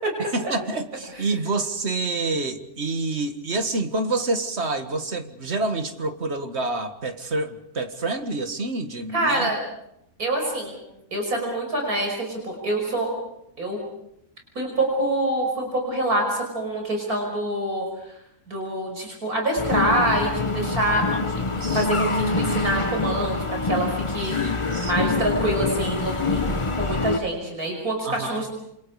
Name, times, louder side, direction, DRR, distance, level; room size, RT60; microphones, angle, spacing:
voice 1, 0.2-9.5 21.5-22.2 24.4-25.3 28.0-28.5, right 2 dB, 50° right, 7 dB, 2.0 m, -28 dB
voice 2, 9.1-9.6 10.2-10.8 11.1-13.1 13.6-13.8 14.6-17.9 18.5-21.1 21.7-28.5, right 1 dB, 90° right, 1 dB, 6.1 m, -26 dB
sound 1, 19.6-27.2, left 3 dB, 25° left, 1.0 m, -25 dB
28.0 x 27.5 x 5.0 m, 0.79 s
omnidirectional pair, 1.5 m